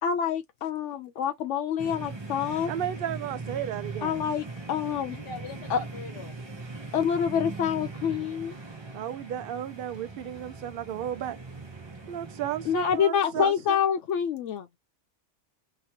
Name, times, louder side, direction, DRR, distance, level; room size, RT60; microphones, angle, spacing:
voice 1, 0.0-2.7 4.0-5.2 5.7-5.8 6.9-8.5 12.7-14.7, left 8 dB, 80° left, 0.9 m, -27 dB
sound 1, 1.8-13.0, right 3 dB, 25° right, 0.8 m, -40 dB
voice 2, 2.7-4.2 8.9-11.4 12.1-13.8, right 10 dB, 60° right, 0.6 m, -33 dB
voice 3, 5.1-6.4, left 4 dB, 55° left, 1.3 m, -41 dB
3.0 x 2.9 x 2.8 m
omnidirectional pair, 1.2 m